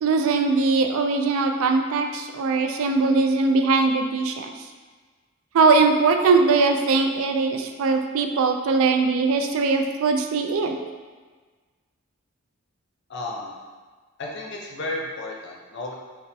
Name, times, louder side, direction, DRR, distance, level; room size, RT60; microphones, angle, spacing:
voice 1, 0.0-4.5 5.5-10.8, right 4 dB, 70° right, 4 dB, 0.3 m, -21 dB
voice 2, 13.1-13.5 14.2-15.9, left 2 dB, 55° left, -1 dB, 0.5 m, -33 dB
3.3 x 2.1 x 4.1 m, 1.4 s
head